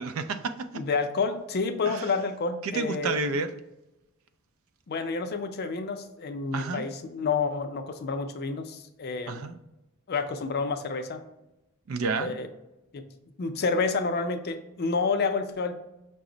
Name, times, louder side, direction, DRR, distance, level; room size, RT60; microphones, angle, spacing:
voice 1, 0.0-0.7 1.9-2.0 2.6-3.5 6.5-6.8 9.3-9.6 11.9-12.4, right 3 dB, 70° right, 10 dB, 0.4 m, -30 dB
voice 2, 0.7-3.1 4.9-9.4 10.1-11.2 12.2-12.5 12.9-13.0 13.4-15.8, left 4 dB, 50° left, 8 dB, 0.4 m, -29 dB
5.8 x 2.0 x 3.8 m, 0.94 s
head